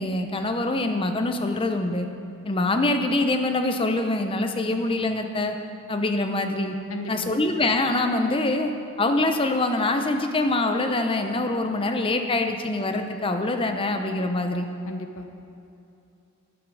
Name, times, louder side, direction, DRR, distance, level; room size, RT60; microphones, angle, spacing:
voice 1, 0.0-2.1 2.4-5.5 5.9-6.7 7.1-8.7 9.0-14.7, left 2 dB, 25° left, 6 dB, 0.6 m, -24 dB
voice 2, 6.9-7.4 14.9-15.3, left 2 dB, 60° left, 5 dB, 0.9 m, -35 dB
9.6 x 8.4 x 6.2 m, 2.7 s
head